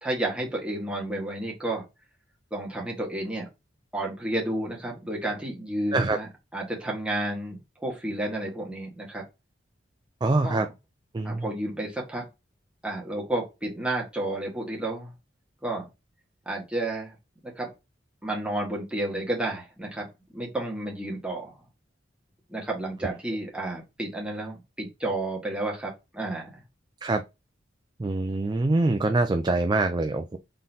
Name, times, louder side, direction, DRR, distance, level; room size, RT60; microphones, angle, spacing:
voice 1, 0.0-1.8 2.5-3.5 3.9-9.2 10.4-10.6 11.2-12.2 12.8-15.1 15.6-15.9 16.4-17.1 17.4-17.7 18.2-21.5 22.5-26.5, right 1 dB, 5° right, 1.6 m, -31 dB
voice 2, 10.2-10.7 11.1-11.5 27.0-27.2 28.0-30.4, right 2 dB, 25° right, 0.3 m, -24 dB
3.8 x 3.8 x 2.7 m
head